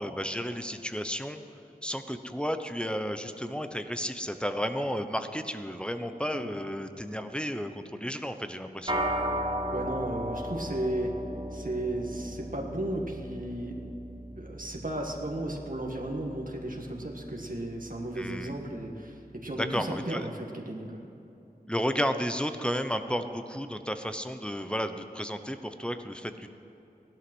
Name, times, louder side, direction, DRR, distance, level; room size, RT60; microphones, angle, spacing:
voice 1, 0.0-1.4 1.8-9.1 18.2-18.5 19.5-20.3 21.7-26.5, equal, 5° left, 8 dB, 0.9 m, -32 dB
sound 1, 8.9-18.4, equal, 35° right, 1.5 m, -36 dB
voice 2, 9.7-11.2 11.5-13.8 14.4-21.0, right 1 dB, 60° right, 0 dB, 1.7 m, -34 dB
16.5 x 11.5 x 6.2 m, 2.9 s
wide cardioid pair, 45°, 16 cm